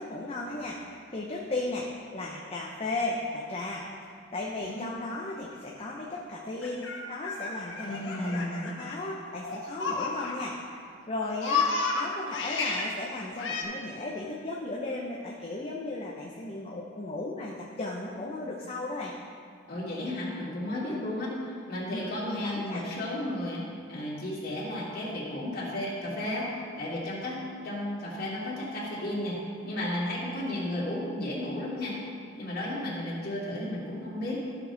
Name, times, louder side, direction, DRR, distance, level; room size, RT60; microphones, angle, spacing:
voice 1, 0.0-3.9 4.3-10.6 11.1-19.1 21.9-22.8, left 2 dB, 35° left, -3 dB, 0.8 m, -35 dB
voice 2, 4.5-4.9 7.8-8.7 19.7-26.5 26.8-29.4 29.6-32.0 32.3-34.5, left 1 dB, 50° left, -6 dB, 2.6 m, -33 dB
Laughter, 6.6-10.7 11.0-12.9 13.4-13.6, left 4 dB, 70° left, 1.3 m, -32 dB
14.0 x 6.3 x 4.0 m, 2.2 s
head